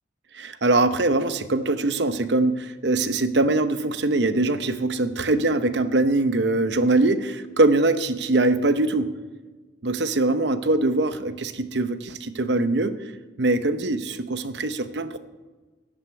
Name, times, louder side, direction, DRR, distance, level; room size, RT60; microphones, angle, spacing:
voice 1, 0.3-9.1 9.8-13.0 13.4-15.2, right 2 dB, 70° right, 12 dB, 0.8 m, -22 dB
11.0 x 7.7 x 8.1 m, 1.3 s
head